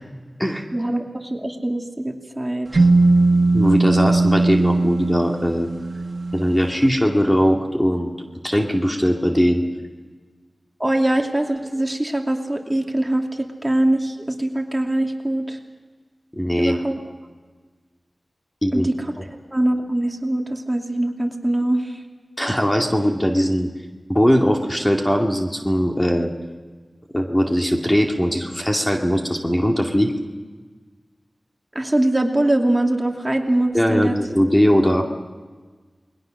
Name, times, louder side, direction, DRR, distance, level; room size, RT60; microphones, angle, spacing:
voice 1, 0.7-2.9 10.8-15.6 16.6-16.9 18.7-19.2 19.5-22.0 31.7-34.2, right 1 dB, 20° right, 2 dB, 2.7 m, -22 dB
sound 1, 2.7-6.6, right 2 dB, 55° right, 1.8 m, -18 dB
voice 2, 3.5-5.7 6.3-8.1 8.4-9.6 16.3-16.7 18.6-18.9 22.4-23.7 24.1-26.3 27.1-30.1 33.7-35.0, equal, 15° left, 1 dB, 2.3 m, -20 dB
28.5 x 21.0 x 6.5 m, 1.4 s
wide cardioid pair, 60°, 0 cm